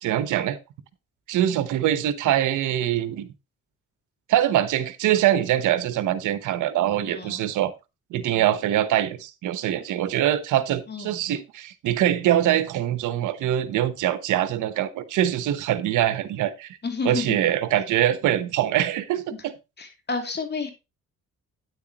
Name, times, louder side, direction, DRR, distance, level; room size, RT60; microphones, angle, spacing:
voice 1, 0.0-0.6 1.3-3.3 4.3-7.7 8.1-16.7 17.0-19.5, right 12 dB, 85° right, 1.1 m, -23 dB
voice 2, 7.1-7.4 10.9-11.2 16.8-17.4 19.3-19.4 19.8-20.7, left 4 dB, 35° left, 2.7 m, -30 dB
9.8 x 8.1 x 3.0 m
cardioid pair, 90°, 30 cm